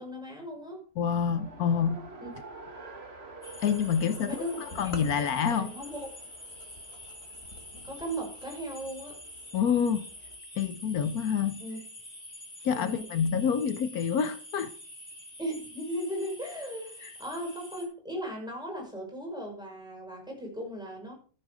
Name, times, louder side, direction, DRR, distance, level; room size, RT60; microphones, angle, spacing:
voice 1, 0.0-0.8 2.2-2.3 4.3-4.8 5.2-6.1 7.8-9.2 11.6-11.8 12.7-13.0 15.4-21.1, equal, 5° right, 6.2 m, -37 dB
voice 2, 1.0-2.0 3.6-5.7 9.5-10.1 10.6-11.6 12.6-14.7 17.0-17.1, left 7 dB, 80° left, 1.3 m, -27 dB
Race car auto racing, 1.3-10.4, right 2 dB, 45° right, 2.1 m, -49 dB
sound 1, 3.4-17.9, left 1 dB, 35° left, 5.2 m, -47 dB
sound 2, 4.7-8.5, left 3 dB, 60° left, 2.4 m, -46 dB
14.5 x 8.1 x 5.0 m
omnidirectional pair, 1.6 m